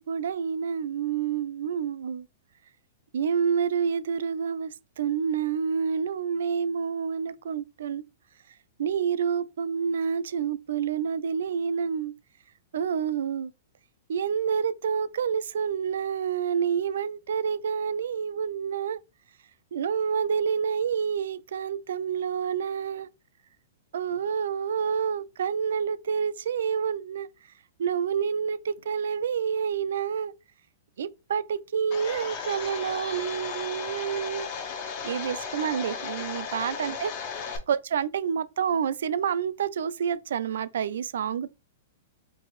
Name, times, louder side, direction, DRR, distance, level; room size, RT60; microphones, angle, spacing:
voice 1, 0.0-2.3 3.1-8.0 8.8-12.1 12.7-13.5 14.1-19.0 19.7-23.1 23.9-27.3 27.8-30.3 31.0-34.5 35.0-37.1 37.7-41.5, right 7 dB, 75° right, 0.3 m, -28 dB
Domestic sounds home sounds, 31.9-37.6, left 6 dB, 35° left, 0.6 m, -35 dB
4.4 x 2.6 x 3.0 m
hypercardioid pair, 170°, 0 cm